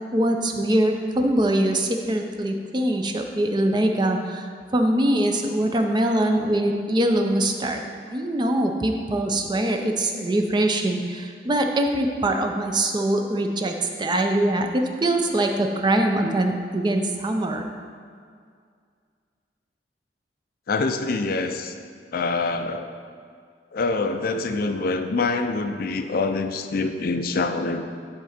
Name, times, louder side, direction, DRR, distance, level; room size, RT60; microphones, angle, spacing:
voice 1, 0.1-7.8 8.1-17.7, right 1 dB, 25° right, 4 dB, 0.5 m, -23 dB
voice 2, 20.7-21.8 22.1-22.9 23.7-27.8, left 3 dB, 55° left, 7 dB, 0.4 m, -25 dB
10.0 x 3.8 x 4.3 m, 2.1 s
head